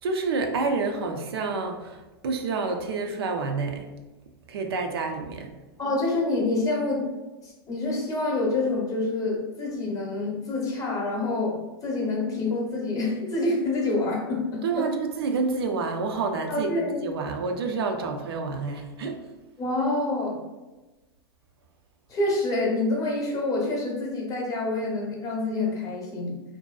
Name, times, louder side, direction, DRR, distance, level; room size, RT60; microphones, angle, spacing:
voice 1, 0.0-3.9 4.5-5.5 14.6-19.2, right 4 dB, 70° right, 4 dB, 0.4 m, -28 dB
voice 2, 5.8-7.1 7.4-14.9 16.5-17.0 19.6-20.5 22.1-26.4, left 2 dB, 25° left, -2 dB, 0.8 m, -27 dB
2.6 x 2.1 x 2.3 m, 1.1 s
hypercardioid pair, 105°, 13 cm